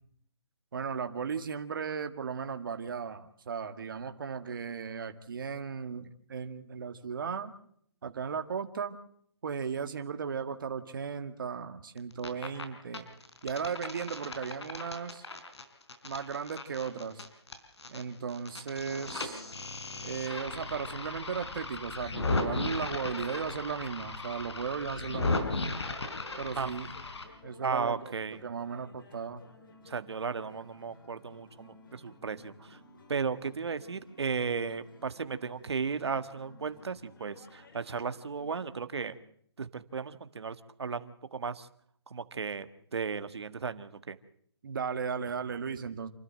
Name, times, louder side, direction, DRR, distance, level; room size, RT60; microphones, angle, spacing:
voice 1, 0.7-7.5 8.0-8.9 9.4-13.1 13.4-15.3 16.0-17.3 17.9-19.6 20.0-25.5 26.4-26.9 27.4-28.1 28.4-29.4 44.6-46.1, right 6 dB, 50° right, 7 dB, 1.9 m, -36 dB
sound 1, 12.0-12.6 12.9-18.0 18.3-27.2, left 3 dB, 90° left, 4.3 m, -36 dB
sound 2, 24.7-39.2, left 2 dB, 50° left, 4.1 m, -56 dB
voice 2, 27.6-28.4 29.9-32.8 33.1-39.1 39.6-41.7 42.1-44.2, right 5 dB, 75° right, 10 dB, 1.6 m, -35 dB
28.0 x 12.5 x 7.6 m, 0.66 s
hypercardioid pair, 170°, 14 cm